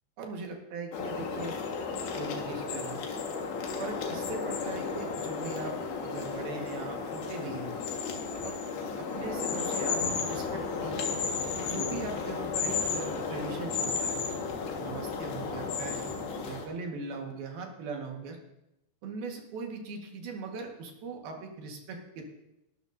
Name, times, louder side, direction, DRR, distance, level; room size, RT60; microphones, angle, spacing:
voice 1, 0.2-1.6 1.9-3.0 3.8-7.7 8.4-8.5 9.1-11.1 11.7-14.2 14.8-16.1 16.3-18.4 19.0-22.2, right 4 dB, 65° right, 1 dB, 3.3 m, -40 dB
sound 1, 0.9-16.7, left 5 dB, 90° left, 3.7 m, -33 dB
20.0 x 12.5 x 2.7 m, 0.90 s
omnidirectional pair, 4.9 m